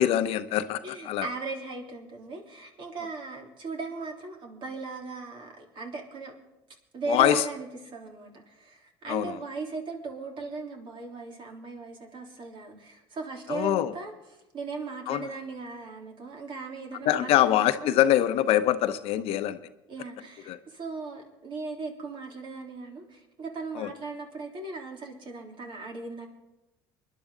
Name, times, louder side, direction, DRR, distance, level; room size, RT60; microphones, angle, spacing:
voice 1, 0.0-1.3 7.1-7.4 9.1-9.4 13.5-13.9 15.1-15.3 17.0-19.6 20.5-20.6 23.7-23.9, left 12 dB, 65° left, 11 dB, 0.8 m, -24 dB
voice 2, 0.8-6.3 6.9-14.1 14.5-18.0 19.9-26.3, right 3 dB, 50° right, 0 dB, 3.6 m, -38 dB
25.5 x 11.0 x 3.9 m, 0.97 s
supercardioid pair, 75°, 11 cm